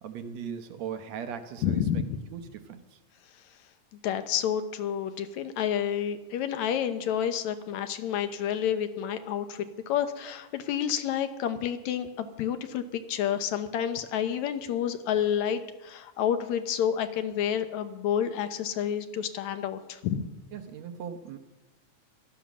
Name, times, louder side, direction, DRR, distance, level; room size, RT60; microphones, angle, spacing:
voice 1, 0.0-2.0 2.3-3.0 20.5-21.4, right 8 dB, 70° right, 8 dB, 2.1 m, -39 dB
voice 2, 1.6-2.2 4.0-20.3, left 9 dB, 75° left, 10 dB, 2.2 m, -29 dB
17.0 x 12.5 x 6.1 m, 1.1 s
omnidirectional pair, 3.3 m